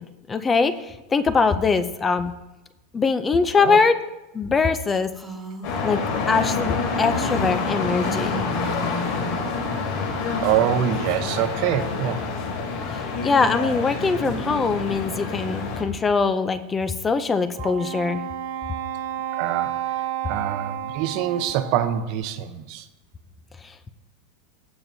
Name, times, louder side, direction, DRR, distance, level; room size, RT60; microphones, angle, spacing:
voice 1, 0.0-2.3 2.9-4.0 4.3-5.1 5.8-8.5 13.2-18.2 23.6-23.9, left 4 dB, 15° left, 11 dB, 0.5 m, -22 dB
Female speech woman speaking, 5.1-5.8 7.2-9.5, left 1 dB, ahead, 1.7 m, -35 dB
sound 1, 5.6-15.8, left 4 dB, 60° left, 2.9 m, -27 dB
voice 2, 10.4-12.2 19.3-22.9, right 10 dB, 50° right, 10 dB, 0.8 m, -25 dB
Wind instrument woodwind instrument, 17.6-22.1, right 12 dB, 85° right, 1.1 m, -31 dB
15.5 x 7.4 x 2.7 m, 1.0 s
supercardioid pair, 155°, 0 cm